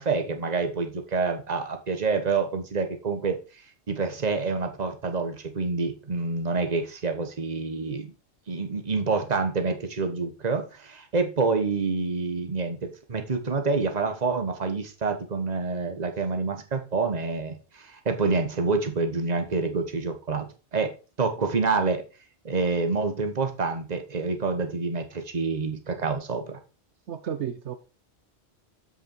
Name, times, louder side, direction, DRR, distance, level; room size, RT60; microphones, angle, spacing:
voice 1, 0.0-3.4 3.9-8.1 8.5-20.4 20.7-22.0 22.4-26.6, right 4 dB, 40° right, 1.3 m, -27 dB
voice 2, 27.1-27.7, right 9 dB, 75° right, 1.1 m, -32 dB
7.8 x 6.2 x 4.5 m
omnidirectional pair, 1.2 m